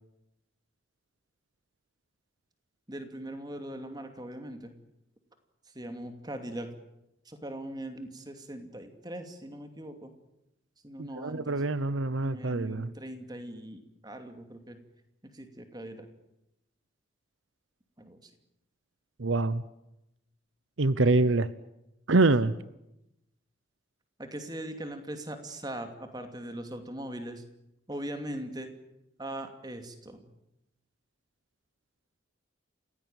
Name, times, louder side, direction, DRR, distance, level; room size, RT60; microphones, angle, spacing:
voice 1, 2.9-4.7 5.7-6.7 7.3-10.1 10.8-11.6 12.2-14.8 15.3-16.1 18.0-18.3 24.2-27.4 27.9-28.7 29.2-30.2, right 1 dB, 20° right, 7 dB, 2.6 m, -40 dB
voice 2, 11.0-12.9 19.2-19.6 20.8-21.5 22.1-22.5, right 2 dB, 80° right, 16 dB, 0.9 m, -25 dB
29.0 x 16.5 x 9.1 m, 0.87 s
head